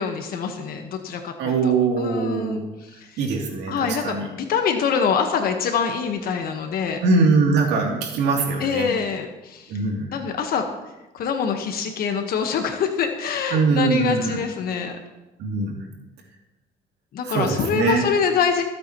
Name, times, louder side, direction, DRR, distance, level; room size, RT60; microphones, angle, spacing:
voice 1, 0.0-3.2 3.7-7.0 8.6-9.8 10.1-10.6 11.1-15.0 17.1-18.6, left 6 dB, 60° left, 5 dB, 1.3 m, -25 dB
voice 2, 1.4-2.6 3.2-4.2 7.0-8.9 9.7-10.1 13.5-14.4 15.4-15.8 17.3-18.0, right 4 dB, 85° right, 0 dB, 2.9 m, -22 dB
23.0 x 8.3 x 3.1 m, 1.0 s
cardioid pair, 110°, 17 cm